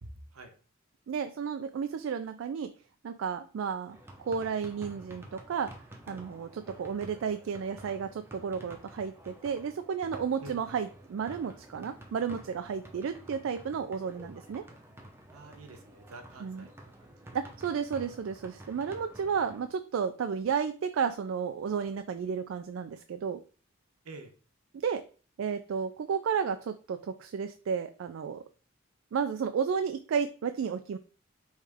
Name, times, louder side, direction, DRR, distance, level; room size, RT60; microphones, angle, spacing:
voice 1, 0.0-0.5 10.4-10.7 15.3-16.7 17.0-17.4 24.0-24.3, right 2 dB, 90° right, 6 dB, 0.9 m, -47 dB
voice 2, 1.1-2.7 3.0-5.7 6.1-14.6 16.4-16.7 17.3-23.4 24.8-25.0 25.4-28.4 29.1-31.0, right 6 dB, 65° right, 9 dB, 0.3 m, -32 dB
sound 1, 3.9-19.7, right 1 dB, 10° right, 0.7 m, -50 dB
4.9 x 3.2 x 3.4 m, 0.38 s
head